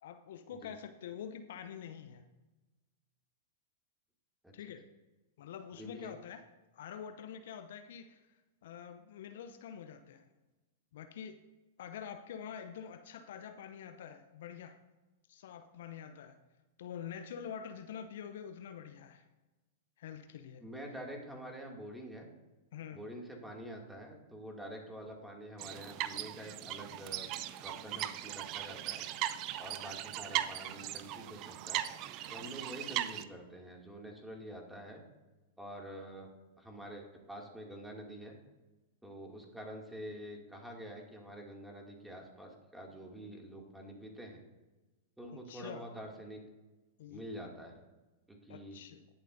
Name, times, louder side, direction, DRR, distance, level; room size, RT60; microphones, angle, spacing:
voice 1, 0.0-2.3 4.5-4.8 5.4-6.4 6.7-10.3 10.9-11.4 11.8-14.8 15.3-16.4 16.8-19.3 20.0-20.6 22.7-23.0 45.3-45.9 47.0-47.2 48.5-49.0, left 8 dB, 65° left, 9 dB, 0.7 m, -46 dB
voice 2, 5.7-6.1 20.6-22.3 22.9-27.4 27.6-29.0 29.6-31.8 32.3-35.0 35.6-36.3 36.6-38.3 39.0-44.4 45.2-46.4 47.1-47.7 48.3-48.8, equal, 5° right, 0 dB, 2.4 m, -47 dB
sound 1, 25.6-33.2, right 13 dB, 40° right, 0.5 m, -39 dB
19.0 x 7.2 x 2.7 m, 1.1 s
figure-of-eight pair, 100°, 0 cm